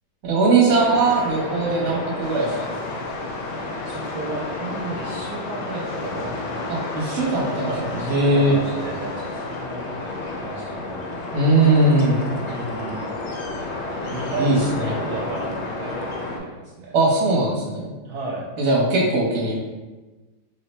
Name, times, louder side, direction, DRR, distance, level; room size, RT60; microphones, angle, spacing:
voice 1, 0.2-2.7 6.7-8.5 11.3-12.2 14.4-15.0 16.9-17.9 18.6-19.6, right 2 dB, 50° right, -4 dB, 1.1 m, -20 dB
sound 1, 0.8-16.4, left 2 dB, 65° left, 0.6 m, -31 dB
sound 2, 2.2-9.6, left 3 dB, 85° left, 1.2 m, -38 dB
voice 2, 3.8-6.4 7.6-10.1 10.4-11.1 12.4-13.1 14.1-14.6 15.0-16.9 18.0-18.5, right 3 dB, 75° right, -4 dB, 1.1 m, -33 dB
3.2 x 2.1 x 4.1 m, 1.2 s
omnidirectional pair, 1.8 m